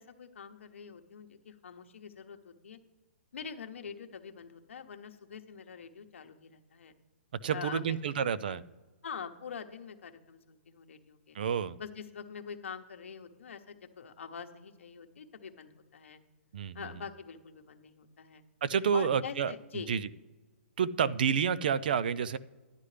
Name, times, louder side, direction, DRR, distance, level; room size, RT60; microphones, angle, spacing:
voice 1, 0.0-2.8 3.3-6.9 7.5-8.6 9.0-11.4 11.8-16.2 16.7-18.4 18.9-19.9, left 6 dB, 65° left, 6 dB, 1.0 m, -45 dB
voice 2, 7.4-8.6 11.3-11.8 16.5-16.8 18.6-19.5 19.9-20.1 20.8-22.4, right 7 dB, 45° right, 17 dB, 0.3 m, -29 dB
11.0 x 9.8 x 3.3 m, 1.3 s
hypercardioid pair, 170°, 7 cm